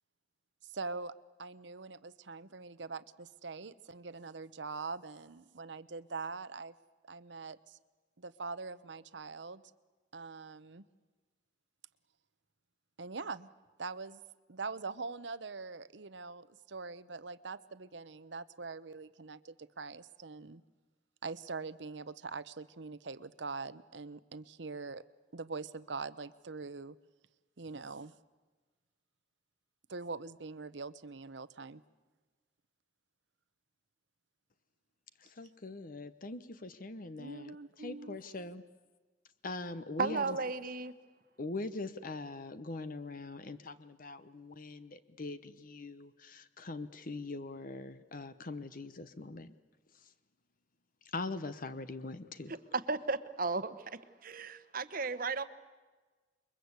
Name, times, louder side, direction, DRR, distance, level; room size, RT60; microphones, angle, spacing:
voice 1, 0.7-1.1 1.4-6.7 7.1-7.8 8.2-9.6 10.1-10.9 13.0-13.5 13.8-14.2 14.5-20.6 21.2-25.0 25.3-27.0 27.6-28.1 29.9-31.8 37.2-38.2, right 4 dB, 70° right, 15 dB, 0.9 m, -43 dB
voice 2, 35.2-38.6 39.4-40.4 41.4-49.5 51.1-52.5, left 3 dB, 50° left, 12 dB, 1.0 m, -42 dB
voice 3, 40.0-40.9 52.9-53.8 54.2-55.4, right 3 dB, 50° right, 12 dB, 1.2 m, -34 dB
28.5 x 22.5 x 8.2 m, 1.3 s
head